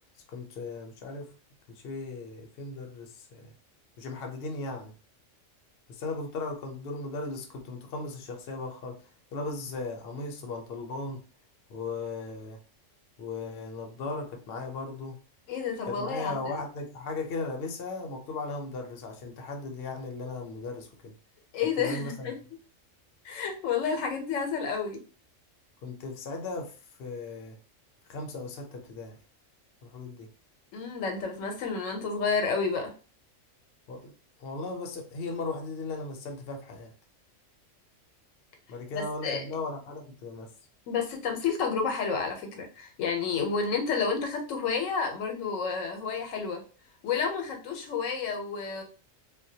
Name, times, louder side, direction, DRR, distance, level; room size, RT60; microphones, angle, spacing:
voice 1, 0.3-1.3 1.7-3.5 4.0-4.9 5.9-11.2 11.7-12.6 13.2-15.2 15.9-21.1 21.8-22.5 25.8-27.6 28.1-29.2 29.8-30.3 33.9-34.1 34.4-36.9 38.7-40.5, left 3 dB, 60° left, 0.7 m, -37 dB
voice 2, 15.5-16.4 21.5-22.4 23.2-25.0 30.7-32.9 38.9-39.4 40.9-46.6 47.0-48.8, left 5 dB, 80° left, 1.0 m, -30 dB
2.2 x 2.1 x 2.6 m
omnidirectional pair, 1.3 m